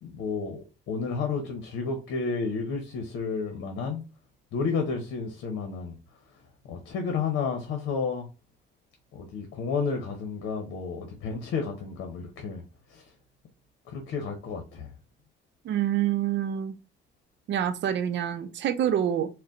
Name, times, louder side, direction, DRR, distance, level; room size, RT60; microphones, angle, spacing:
voice 1, 0.0-4.0 4.5-6.0 6.6-8.3 9.1-12.6 12.9-13.0 13.9-14.9, left 5 dB, 90° left, 0.9 m, -31 dB
voice 2, 15.6-16.7 17.5-19.3, right 10 dB, 65° right, 0.6 m, -26 dB
4.4 x 2.2 x 3.8 m
cardioid pair, 90°, 20 cm